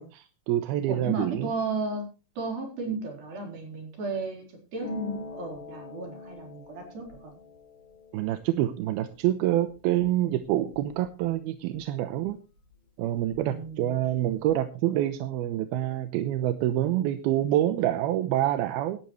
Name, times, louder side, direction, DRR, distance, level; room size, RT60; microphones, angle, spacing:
voice 1, 0.0-1.5 8.1-12.4 13.0-19.0, right 13 dB, 90° right, 9 dB, 2.8 m, -27 dB
voice 2, 0.9-2.1 2.4-7.3 13.5-14.2, right 3 dB, 70° right, 1 dB, 6.1 m, -34 dB
Harp, 4.8-12.3 12.5-13.7 13.9-14.6, left 1 dB, 35° left, 7.2 m, -44 dB
17.5 x 12.5 x 3.2 m, 0.32 s
omnidirectional pair, 4.3 m